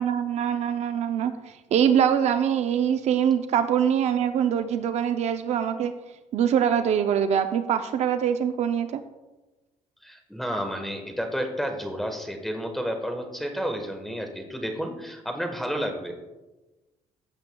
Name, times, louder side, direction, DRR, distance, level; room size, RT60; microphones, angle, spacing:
voice 1, 0.0-5.9 6.3-9.0, right 8 dB, 60° right, 9 dB, 0.5 m, -23 dB
voice 2, 10.0-16.2, equal, ahead, 4 dB, 1.2 m, -31 dB
15.5 x 7.8 x 2.3 m, 1.1 s
cardioid pair, 130°, 12 cm